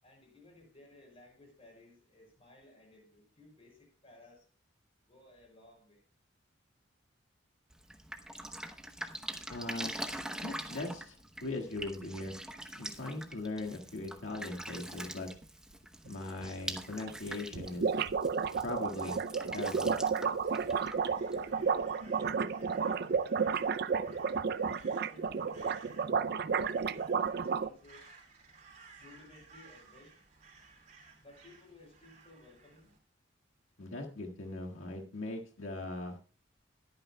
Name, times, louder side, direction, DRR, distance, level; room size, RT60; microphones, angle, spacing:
voice 1, 0.0-4.5 5.1-6.0 21.3-24.3 25.0-28.0 29.0-30.1 31.2-32.9, left 2 dB, 30° left, 0 dB, 6.2 m, -58 dB
Drip, 7.7-21.8, right 1 dB, 5° right, 0.8 m, -44 dB
voice 2, 9.5-10.0 10.4-12.3 12.8-15.3 16.1-17.9 18.6-19.2 19.5-19.9 33.8-36.2, left 2 dB, 90° left, 0 dB, 1.8 m, -39 dB
sound 1, 16.4-16.5 16.8-16.9 17.1-17.2 17.4-27.7, right 6 dB, 50° right, 0.4 m, -32 dB
Crow, 20.3-33.0, right 4 dB, 35° right, 3.4 m, -58 dB
21.5 x 9.1 x 2.2 m, 0.38 s
head